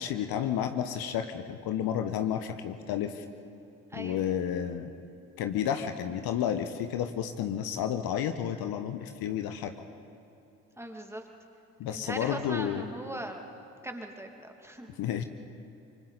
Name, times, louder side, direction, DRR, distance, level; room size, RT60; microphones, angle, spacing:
voice 1, 0.0-3.2 3.9-4.9 5.4-9.7 11.8-12.9 15.0-15.2, left 9 dB, 55° left, 8 dB, 1.2 m, -31 dB
voice 2, 3.9-4.2 10.8-11.3 11.9-13.5 13.8-14.9, right 1 dB, 5° right, 3 dB, 2.5 m, -39 dB
27.0 x 25.0 x 4.1 m, 2.8 s
figure-of-eight pair, 50°, 43 cm